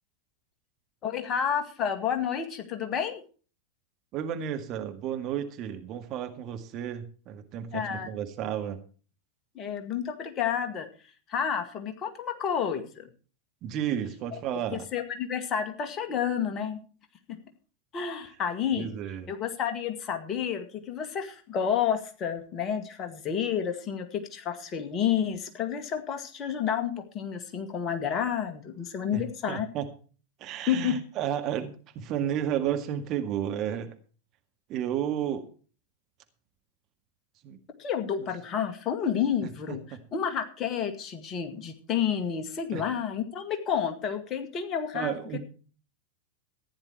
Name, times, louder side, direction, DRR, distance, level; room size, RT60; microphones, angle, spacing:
voice 1, 1.0-3.2 7.7-8.1 9.6-10.9 11.3-13.1 14.7-16.8 17.3-17.4 17.9-18.9 19.3-29.7 30.7-30.9 37.8-39.8 40.1-45.1, left 8 dB, 30° left, 7 dB, 2.1 m, -30 dB
voice 2, 4.1-8.8 13.6-14.9 18.7-19.3 29.1-29.9 30.4-33.9 34.7-35.5 37.4-37.6 38.2-38.3 39.4-40.0 42.7-42.8 44.9-45.4, right 10 dB, 35° right, 6 dB, 1.9 m, -32 dB
15.0 x 10.5 x 4.5 m, 0.38 s
figure-of-eight pair, 90°, 0 cm